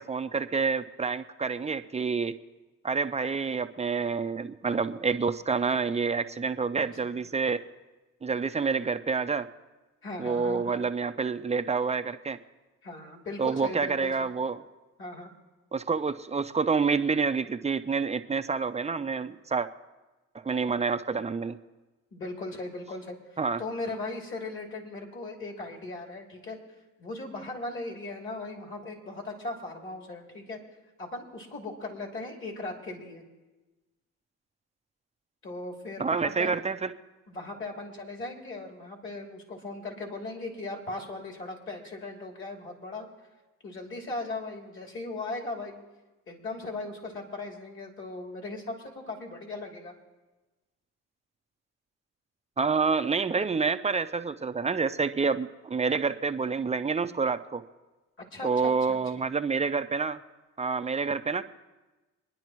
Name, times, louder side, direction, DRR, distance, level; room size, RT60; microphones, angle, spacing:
voice 1, 0.0-2.4 2.8-7.6 8.2-9.5 10.2-12.4 13.4-14.6 15.7-19.7 20.3-21.6 23.4-23.6 36.0-36.9 52.6-57.6 58.4-60.2 60.6-61.4, right 5 dB, 20° right, 10 dB, 0.6 m, -28 dB
voice 2, 10.0-10.9 12.8-14.3 15.0-15.3 22.1-26.6 27.0-30.6 31.0-33.2 35.4-36.6 37.3-43.1 43.6-45.7 46.3-49.9 58.3-58.7, left 2 dB, 40° left, 0 dB, 2.9 m, -38 dB
25.5 x 10.5 x 3.1 m, 1.2 s
cardioid pair, 90°, 30 cm